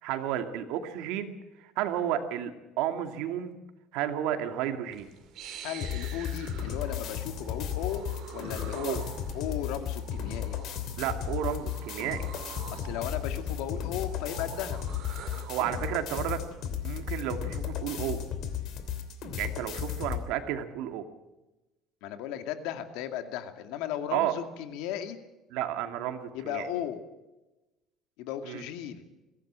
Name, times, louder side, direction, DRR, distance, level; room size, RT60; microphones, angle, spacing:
voice 1, 0.0-3.6 3.9-5.1 8.8-9.0 11.0-12.3 15.5-16.4 16.8-18.2 19.3-21.1 24.1-24.3 25.5-26.7 28.4-28.6, right 11 dB, 75° right, 6 dB, 2.4 m, -32 dB
sound 1, 4.9-15.9, right 8 dB, 50° right, 3.5 m, -47 dB
voice 2, 5.6-8.1 8.3-9.0 9.3-10.6 12.7-14.8 22.0-25.2 26.3-27.0 28.2-29.0, left 10 dB, 75° left, 7 dB, 2.3 m, -36 dB
sound 2, 5.8-20.2, left 9 dB, 50° left, 3.0 m, -35 dB
23.0 x 16.5 x 7.5 m, 1.1 s
cardioid pair, 165°, 0 cm